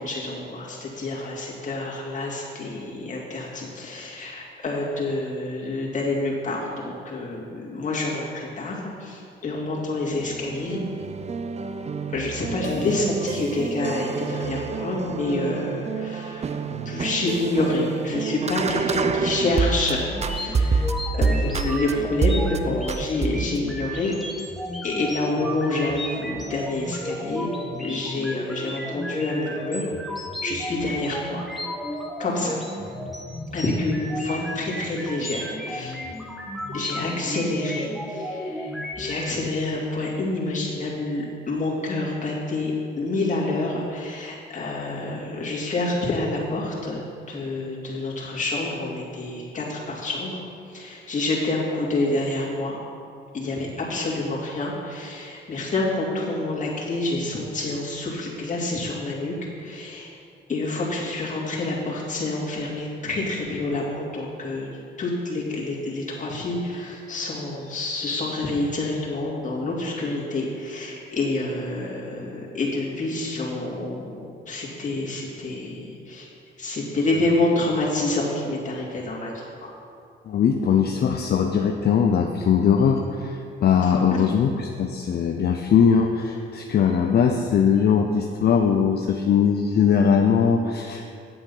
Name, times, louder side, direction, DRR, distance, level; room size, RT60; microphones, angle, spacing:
voice 1, 0.0-10.8 12.1-16.4 16.7-20.9 21.2-24.2 24.8-27.5 27.8-29.9 30.4-31.4 32.2-32.6 33.5-36.0 36.7-50.4 50.7-52.8 53.3-60.1 60.5-64.7 65.0-76.3 76.6-79.3 79.6-79.7 84.1-84.2, left 2 dB, 40° left, -4 dB, 2.6 m, -28 dB
sound 1, 10.2-19.9 20.2-21.9 22.2-22.6 22.9-23.6, right 4 dB, 35° right, 0.6 m, -27 dB
sound 2, 20.1-39.3, equal, ahead, 1.4 m, -33 dB
voice 2, 80.3-91.2, left 7 dB, 55° left, 3 dB, 0.7 m, -20 dB
8.9 x 7.7 x 5.6 m, 2.3 s
cardioid pair, 90°, 20 cm